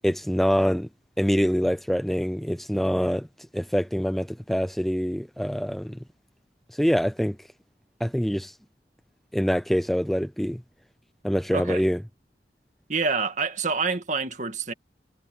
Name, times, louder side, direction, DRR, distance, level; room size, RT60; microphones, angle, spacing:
voice 1, 0.0-0.9 1.2-3.3 3.5-6.0 6.7-7.4 8.0-8.5 9.3-10.6 11.2-12.0, equal, ahead, 0.5 m, -25 dB
voice 2, 12.9-14.7, right 4 dB, 45° right, 2.1 m, -27 dB
head